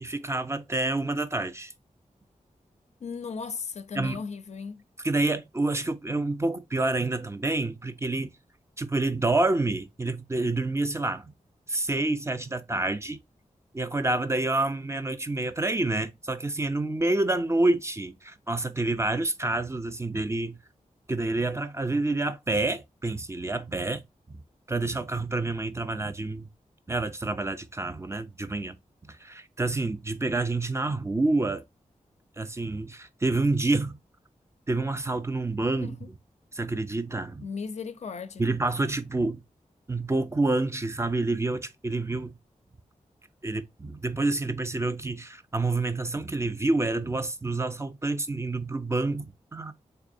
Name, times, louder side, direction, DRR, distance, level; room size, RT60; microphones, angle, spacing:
voice 1, 0.0-1.7 4.0-4.2 5.0-8.3 8.8-11.3 11.7-13.2 13.7-20.6 21.1-24.0 24.3-24.4 24.7-26.5 26.9-28.8 29.1-31.6 32.4-34.0 34.7-36.0 36.5-37.5 38.4-39.4 39.9-42.4 43.4-49.7, right 2 dB, 20° right, 0.3 m, -28 dB
voice 2, 3.0-4.8 35.8-36.1 37.4-38.5, left 5 dB, 55° left, 0.4 m, -36 dB
3.4 x 3.3 x 2.5 m
wide cardioid pair, 115°, 13 cm